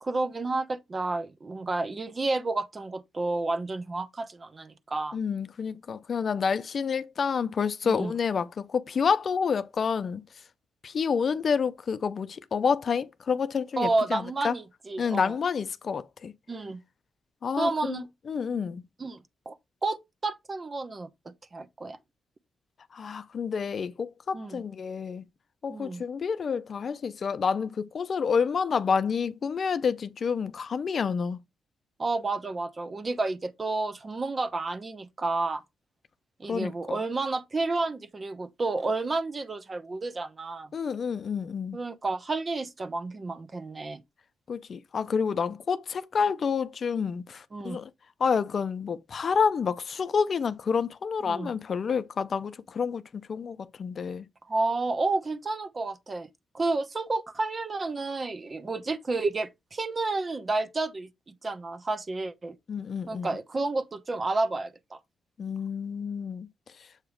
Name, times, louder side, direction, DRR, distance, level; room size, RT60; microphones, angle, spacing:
voice 1, 0.0-5.2 7.8-8.1 13.8-15.3 16.5-16.8 17.6-18.1 19.0-19.2 19.5-19.6 19.8-22.0 24.3-24.6 25.7-26.0 32.0-35.6 36.4-40.7 41.7-44.0 47.5-47.8 51.3-51.5 54.5-56.3 56.5-62.6 63.1-65.0, right 3 dB, 35° right, 0.9 m, -31 dB
voice 2, 5.1-10.2 10.8-14.5 15.0-16.3 17.4-18.8 22.9-25.2 25.6-31.4 36.5-37.0 40.7-41.8 44.5-47.9 48.2-54.3 62.7-63.4 65.4-66.5, left 6 dB, 55° left, 0.5 m, -29 dB
7.3 x 2.9 x 5.0 m
cardioid pair, 80°, 0 cm